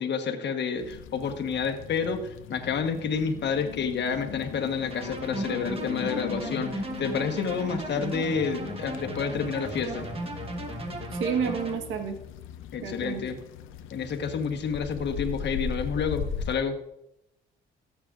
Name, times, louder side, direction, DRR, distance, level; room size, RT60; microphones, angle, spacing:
voice 1, 0.0-10.1 12.7-13.4 13.9-16.8, left 6 dB, 60° left, 6 dB, 1.3 m, -29 dB
sound 1, 0.8-16.5, left 7 dB, 85° left, 0.6 m, -39 dB
sound 2, 4.9-11.8, right 2 dB, 30° right, 1.4 m, -36 dB
voice 2, 10.7-12.2 12.8-13.2, right 6 dB, 85° right, 5 dB, 1.4 m, -31 dB
14.5 x 8.0 x 2.5 m, 0.81 s
cardioid pair, 90°, 20 cm